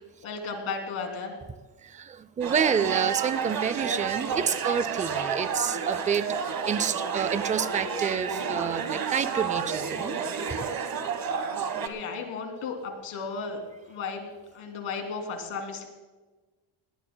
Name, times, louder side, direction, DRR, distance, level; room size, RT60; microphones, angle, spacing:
voice 1, 0.2-1.3 11.5-13.6 13.9-15.9, left 4 dB, 80° left, 4 dB, 3.0 m, -35 dB
voice 2, 1.8-10.2 10.5-10.7, right 7 dB, 20° right, 15 dB, 0.3 m, -29 dB
sound 1, 2.4-11.9, right 6 dB, 45° right, 1.4 m, -30 dB
20.0 x 18.5 x 2.2 m, 1.2 s
cardioid pair, 145°, 48 cm